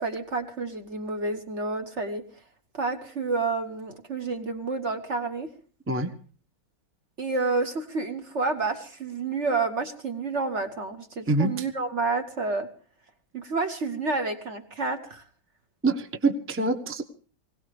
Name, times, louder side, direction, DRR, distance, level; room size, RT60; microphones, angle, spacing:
voice 1, 0.0-2.2 2.7-5.5 7.2-12.7 13.3-15.2, right 3 dB, 40° right, 7 dB, 1.2 m, -29 dB
voice 2, 11.3-11.7 15.8-17.0, right 2 dB, 10° right, 6 dB, 0.6 m, -25 dB
21.0 x 18.0 x 3.4 m, 0.41 s
omnidirectional pair, 2.2 m